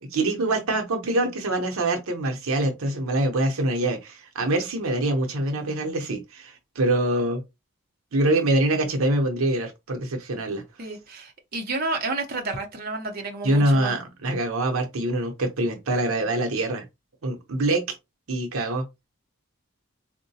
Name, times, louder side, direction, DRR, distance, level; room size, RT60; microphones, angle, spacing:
voice 1, 0.0-7.4 8.1-10.6 13.4-16.9 17.2-18.0 18.3-18.9, right 1 dB, 80° right, 0.7 m, -24 dB
voice 2, 10.8-13.9, right 3 dB, 45° right, 0.7 m, -31 dB
3.7 x 2.1 x 2.7 m
head